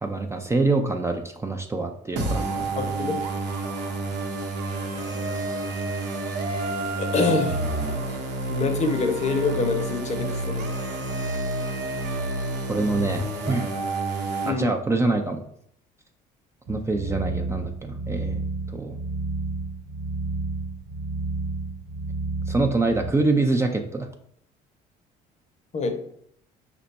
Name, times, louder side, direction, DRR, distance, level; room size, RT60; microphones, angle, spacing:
voice 1, 0.0-2.7 12.7-13.7 14.5-15.4 16.7-18.4 18.7-19.0 22.5-24.1, right 3 dB, 15° right, 4 dB, 0.4 m, -25 dB
sound 1, 2.2-14.5, right 2 dB, 80° right, 0.8 m, -29 dB
voice 2, 2.8-3.2 7.0-7.6 8.5-10.7 14.4-14.7 25.7-26.0, left 4 dB, 40° left, 5 dB, 0.8 m, -25 dB
sound 2, 16.7-23.1, right 3 dB, 50° right, 0.8 m, -31 dB
5.0 x 2.2 x 4.0 m, 0.69 s
supercardioid pair, 80°, 18 cm